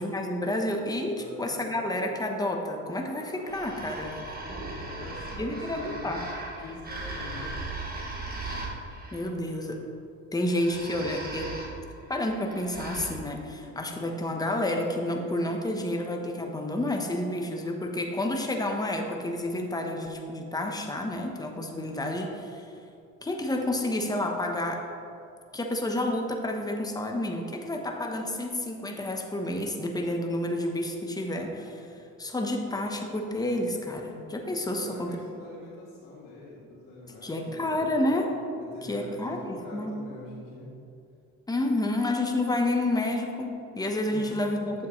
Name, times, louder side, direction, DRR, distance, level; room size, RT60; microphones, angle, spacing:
voice 1, 0.0-4.1 5.4-6.2 9.1-9.8 10.3-11.5 12.1-22.7 23.2-24.9 25.5-31.8 32.2-35.2 37.2-38.3 38.8-39.9 41.5-44.9, left 1 dB, 10° left, 2 dB, 1.0 m, -30 dB
voice 2, 1.0-1.7 4.4-6.2 6.6-7.9 34.7-38.0 38.5-40.7 44.1-44.5 44.8-44.9, left 2 dB, 90° left, -7 dB, 2.0 m, -45 dB
sound 1, 2.1-5.0 5.4-5.5 5.9-6.0 6.8-9.1 9.6-10.0 10.4-10.5 11.1-12.0 12.3-14.2 14.6-18.1, right 1 dB, 45° right, 1.7 m, -50 dB
sound 2, 3.4-9.2 10.4-13.1, right 2 dB, 30° right, 1.6 m, -38 dB
8.9 x 7.0 x 3.1 m, 2.6 s
cardioid pair, 95°, 31 cm